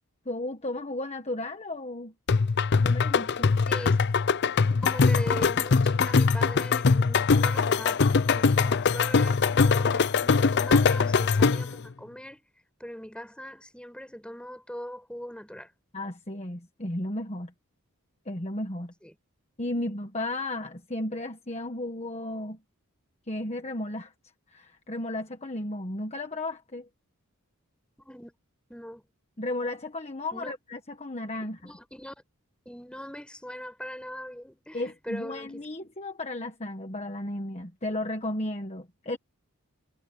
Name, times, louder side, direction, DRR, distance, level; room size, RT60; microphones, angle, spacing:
voice 1, 0.2-2.1 2.8-3.5 15.9-17.5 18.2-18.9 19.6-22.6 23.3-24.1 24.5-26.9 29.4-31.7 34.7-39.2, left 1 dB, 30° left, 1.4 m, -34 dB
sound 1, 2.3-11.8, left 5 dB, 50° left, 0.5 m, -22 dB
voice 2, 3.6-4.0 4.8-12.4 12.8-15.7 19.0-19.1 28.0-28.3 28.7-29.0 30.3-30.5 31.6-32.1 32.7-35.6, equal, 5° left, 7.2 m, -40 dB
head